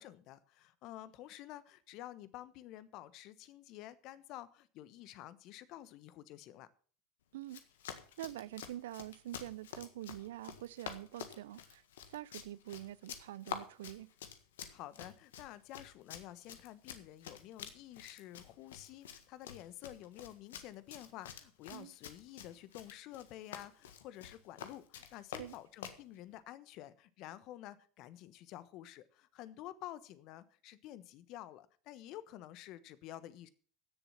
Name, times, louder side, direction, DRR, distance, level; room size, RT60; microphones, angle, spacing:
voice 1, 0.0-6.7 14.7-33.5, left 13 dB, 55° left, 1.1 m, -50 dB
Run, 7.4-26.0, left 8 dB, 75° left, 1.6 m, -49 dB
voice 2, 8.2-11.8 12.1-14.1 21.7-21.9 25.4-25.5, right 14 dB, 75° right, 0.5 m, -45 dB
15.5 x 7.1 x 5.8 m
hypercardioid pair, 80°, 0 cm